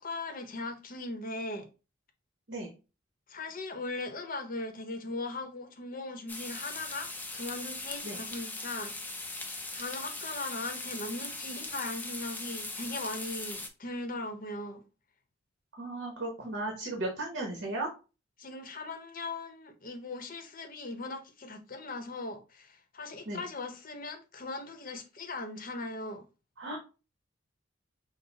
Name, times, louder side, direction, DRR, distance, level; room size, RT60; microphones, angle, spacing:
voice 1, 0.0-1.7 3.3-8.9 9.4-14.8 18.4-26.2, left 2 dB, 45° left, 0.8 m, -39 dB
sound 1, 6.3-13.7, left 2 dB, 10° left, 0.5 m, -40 dB
voice 2, 15.8-17.9 23.2-23.4 26.6-26.8, right 2 dB, 60° right, 1.1 m, -35 dB
5.6 x 2.1 x 3.9 m
head